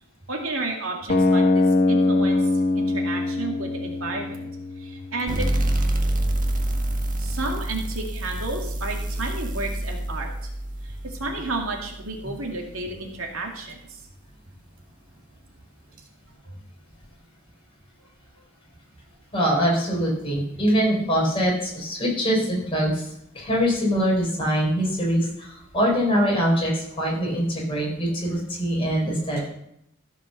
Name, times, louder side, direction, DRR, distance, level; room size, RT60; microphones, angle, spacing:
voice 1, 0.3-2.5 2.7-4.5 4.8-5.5 7.2-10.5 10.8-14.0, right 2 dB, 80° right, 1 dB, 2.3 m, -32 dB
sound 1, 1.1-7.1, left 2 dB, 40° left, 1.0 m, -24 dB
sound 2, 5.3-12.5, right 1 dB, 40° right, 1.4 m, -27 dB
voice 2, 19.3-23.1 23.3-29.5, equal, 25° left, -3 dB, 5.0 m, -23 dB
14.5 x 5.4 x 6.7 m, 0.76 s
head